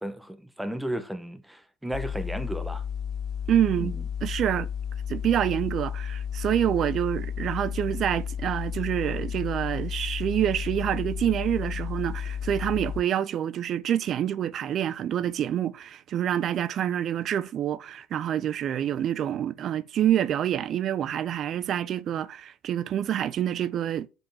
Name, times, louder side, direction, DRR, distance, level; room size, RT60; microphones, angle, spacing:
voice 1, 0.0-2.9 3.8-4.0, right 1 dB, 5° right, 1.0 m, -34 dB
sound 1, 1.9-13.0, left 8 dB, 55° left, 0.4 m, -33 dB
voice 2, 3.5-3.9 4.2-4.7 5.1-24.1, right 10 dB, 50° right, 0.4 m, -27 dB
5.4 x 4.4 x 5.6 m
hypercardioid pair, 75°, 0 cm